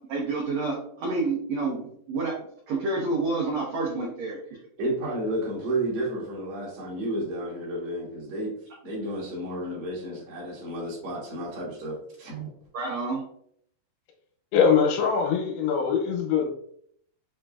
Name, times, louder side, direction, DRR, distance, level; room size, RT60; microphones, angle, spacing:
voice 1, 0.1-2.3 2.7-4.4 12.7-13.2, right 3 dB, 90° right, -4 dB, 1.5 m, -28 dB
voice 2, 4.8-8.5 8.8-12.5, right 1 dB, 60° right, -5 dB, 2.0 m, -31 dB
voice 3, 14.5-16.5, left 6 dB, 85° left, 1 dB, 2.6 m, -22 dB
5.8 x 2.4 x 2.3 m, 0.66 s
omnidirectional pair, 4.3 m